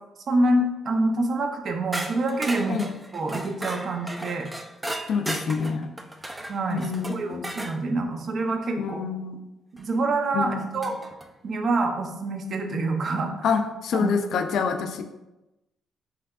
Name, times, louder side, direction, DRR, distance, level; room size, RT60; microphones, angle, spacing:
voice 1, 0.3-2.8 3.1-4.5 6.5-9.0 9.8-11.0 11.4-13.5 13.9-14.1, right 2 dB, 55° right, 4 dB, 0.6 m, -26 dB
sound 1, 1.9-7.8 9.8-9.9 10.8-11.3, right 1 dB, 15° right, 0.4 m, -35 dB
voice 2, 2.7-3.0 5.1-5.9 6.7-7.7 8.8-9.4 10.3-10.9 13.4-15.0, left 5 dB, 70° left, 7 dB, 0.4 m, -27 dB
5.5 x 3.4 x 2.4 m, 0.99 s
cardioid pair, 90°, 0 cm